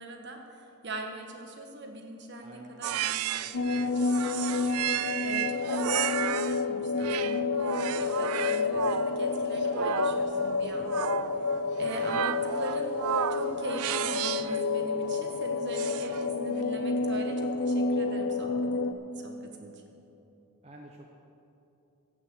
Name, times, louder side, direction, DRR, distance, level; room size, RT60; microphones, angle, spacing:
voice 1, 0.0-4.5 5.2-11.1 11.8-13.0 13.3-19.8, right 1 dB, 50° right, 3 dB, 1.5 m, -41 dB
voice 2, 2.4-3.0 11.8-12.2 20.6-21.1, right 1 dB, 30° right, -1 dB, 0.8 m, -50 dB
sound 1, 2.8-6.6 7.0-14.6 15.7-16.3, right 10 dB, 80° right, 0.4 m, -33 dB
sound 2, 3.5-18.9, left 4 dB, 70° left, 0.6 m, -30 dB
16.0 x 6.1 x 8.0 m, 2.9 s
head